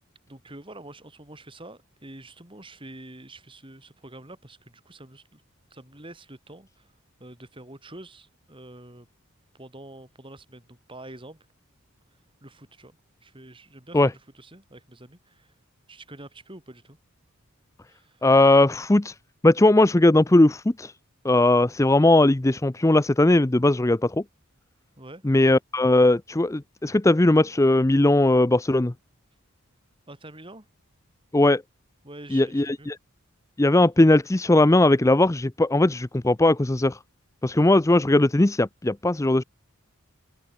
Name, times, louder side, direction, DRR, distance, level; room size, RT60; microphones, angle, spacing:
voice 1, 0.3-5.4 5.7-6.9 7.2-9.1 9.5-11.4 12.4-15.5 15.9-17.0 17.9-18.3 25.0-25.2 30.1-30.7 32.0-32.9, right 1 dB, 25° right, 3.7 m, -46 dB
voice 2, 18.2-19.1 19.4-20.9 21.2-24.2 25.2-28.9 31.3-31.6 32.3-33.0 33.6-37.0 37.4-39.4, left 2 dB, 15° left, 0.5 m, -19 dB
head